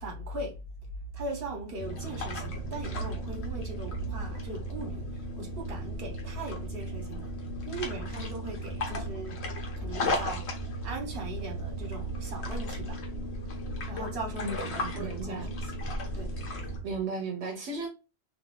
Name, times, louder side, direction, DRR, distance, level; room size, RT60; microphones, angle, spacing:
voice 1, 0.0-0.6 1.1-7.3 7.6-9.4 9.7-13.1 13.9-15.8 16.1-16.7, right 3 dB, 65° right, 1.2 m, -38 dB
sound 1, 1.8-16.8, equal, 80° left, 1.1 m, -35 dB
voice 2, 14.4-15.5 16.8-17.9, right 4 dB, 85° right, 0.9 m, -35 dB
2.6 x 2.5 x 3.1 m
omnidirectional pair, 1.1 m